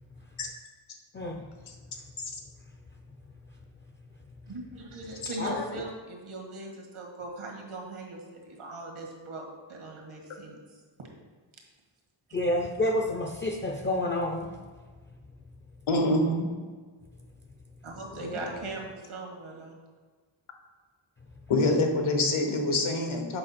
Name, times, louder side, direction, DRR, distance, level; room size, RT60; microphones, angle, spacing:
voice 1, 1.1-1.5 5.4-5.8 12.3-14.6 18.2-18.4, left 1 dB, 25° left, 3 dB, 0.4 m, -29 dB
voice 2, 4.5-10.6 17.8-19.8, right 2 dB, 85° right, 0 dB, 1.7 m, -39 dB
voice 3, 15.9-16.5 21.5-23.4, left 2 dB, 80° left, 3 dB, 1.2 m, -25 dB
7.7 x 4.8 x 4.2 m, 1.5 s
wide cardioid pair, 120°, 48 cm